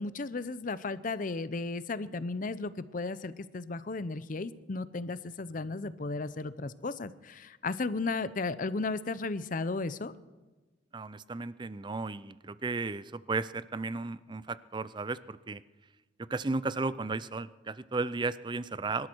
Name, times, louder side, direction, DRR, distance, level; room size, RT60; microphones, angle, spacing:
voice 1, 0.0-10.1, left 3 dB, 45° left, 15 dB, 0.6 m, -34 dB
voice 2, 10.9-15.6 16.3-19.1, right 3 dB, 25° right, 17 dB, 0.5 m, -34 dB
25.0 x 13.0 x 4.6 m, 1.2 s
head